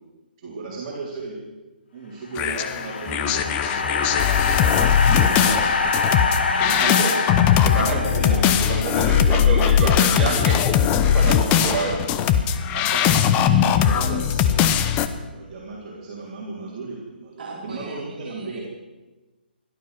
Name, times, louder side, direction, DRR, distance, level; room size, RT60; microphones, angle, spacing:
voice 1, 0.4-1.4 1.9-4.2 5.1-7.4 7.7-8.5 11.6-11.8 12.7-18.6, right 3 dB, 35° right, -6 dB, 3.9 m, -35 dB
sound 1, 2.4-8.8, left 4 dB, 70° left, 2.1 m, -25 dB
sound 2, 2.4-15.1, left 9 dB, 25° left, 0.9 m, -20 dB
voice 2, 6.6-7.1 7.6-10.6 11.0-12.0, right 2 dB, 15° right, -6 dB, 6.1 m, -27 dB
voice 3, 17.4-18.6, right 2 dB, 60° right, -2 dB, 3.1 m, -38 dB
17.0 x 12.5 x 6.1 m, 1.2 s
hypercardioid pair, 140°, 6 cm